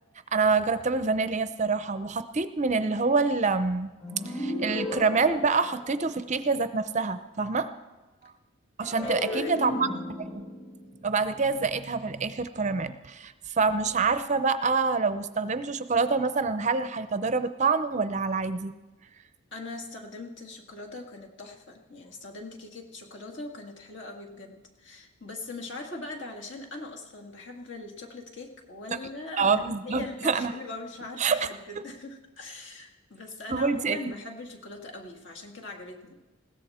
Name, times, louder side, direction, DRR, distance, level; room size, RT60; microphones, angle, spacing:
voice 1, 0.3-3.9 4.3-7.7 8.8-9.9 10.3-10.4 11.0-18.7 29.4-30.5 31.2-31.5 33.5-34.0, right 4 dB, 35° right, 12 dB, 0.5 m, -26 dB
sound 1, 4.0-6.4 8.8-12.1, left 1 dB, 40° left, 3.6 m, -35 dB
voice 2, 9.0-9.9 19.5-36.2, left 2 dB, 55° left, 1 dB, 2.1 m, -41 dB
20.5 x 16.0 x 4.3 m, 1.2 s
head